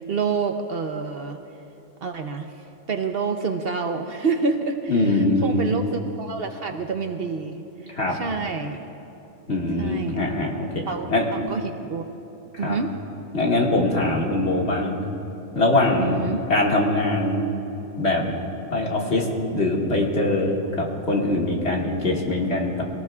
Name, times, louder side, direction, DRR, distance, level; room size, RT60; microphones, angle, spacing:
voice 1, 0.1-1.4 2.0-2.5 2.9-7.6 8.1-8.8 9.8-10.3 10.9-11.1 11.5-12.0 12.6-12.9 16.0-16.4, right 4 dB, 55° right, 5 dB, 0.9 m, -27 dB
voice 2, 4.9-5.6 7.9-8.1 9.5-10.8 11.1-11.3 12.6-12.8 13.3-15.0 15.5-16.2 16.5-17.5 18.0-18.3 18.7-22.8, left 2 dB, 60° left, -2 dB, 2.2 m, -22 dB
24.0 x 18.0 x 2.4 m, 2.9 s
omnidirectional pair, 1.3 m